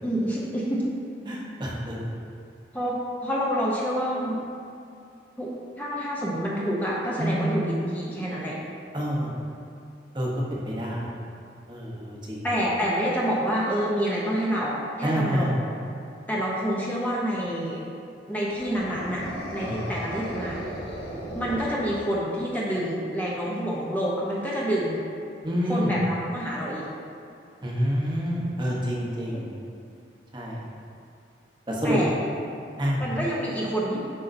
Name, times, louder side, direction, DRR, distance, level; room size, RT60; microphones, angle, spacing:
voice 1, 0.0-0.8 2.7-4.4 5.4-5.5 5.8-8.6 12.4-15.5 16.3-17.8 18.3-19.2 19.5-20.7 21.3-25.0 25.7-26.9 29.2-29.4 31.8-32.2 33.0-34.0, equal, 10° left, -6 dB, 0.6 m, -27 dB
voice 2, 1.3-2.1 7.2-7.6 8.9-9.3 10.1-11.1 11.7-12.5 15.0-15.5 19.5-19.9 25.4-26.0 27.6-29.5 30.3-30.6 31.7-32.1 32.8-33.0, equal, 25° right, -4 dB, 0.9 m, -28 dB
sound 1, 18.5-22.3, equal, 70° left, 1.3 m, -36 dB
8.0 x 5.6 x 2.6 m, 2.5 s
head